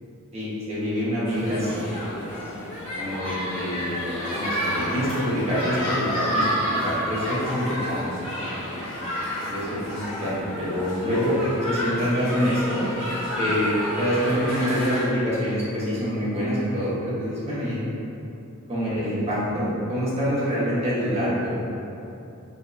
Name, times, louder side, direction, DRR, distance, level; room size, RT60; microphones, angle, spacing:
voice 1, 0.3-1.9 3.0-8.0 9.5-11.4 11.7-12.8 13.4-17.8 18.7-21.6, equal, 30° right, -10 dB, 1.2 m, -26 dB
sound 1, 1.3-15.1, equal, 65° left, 1.1 m, -29 dB
5.2 x 3.0 x 2.6 m, 2.8 s
head